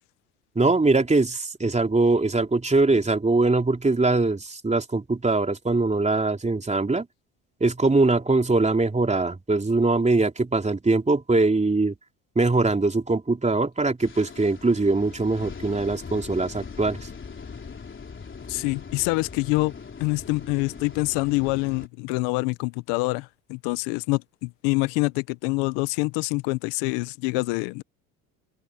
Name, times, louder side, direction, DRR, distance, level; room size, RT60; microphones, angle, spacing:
voice 1, 0.6-7.1 7.6-11.9 12.4-17.0, right 3 dB, 15° right, 3.5 m, -22 dB
sound 1, 14.0-21.9, left 5 dB, 25° left, 4.0 m, -41 dB
voice 2, 18.5-19.7 20.0-27.8, left 26 dB, 70° left, 1.4 m, -26 dB
open air
hypercardioid pair, 70°, 42 cm